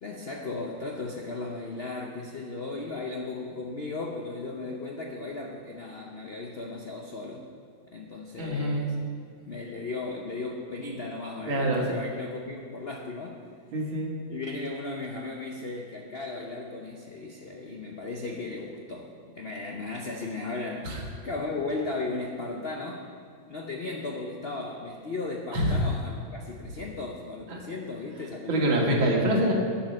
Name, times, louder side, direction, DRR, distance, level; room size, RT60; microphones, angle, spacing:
voice 1, 0.0-7.5 7.9-9.0 9.4-13.4 14.3-23.1 23.5-28.9, left 3 dB, 65° left, 1 dB, 0.6 m, -36 dB
voice 2, 8.4-8.8 11.5-11.9 13.7-14.1 20.8-21.0 25.5-25.7 27.5-27.6 28.5-29.5, right 1 dB, 85° right, -1 dB, 2.5 m, -25 dB
8.9 x 7.8 x 6.4 m, 2.2 s
omnidirectional pair, 2.1 m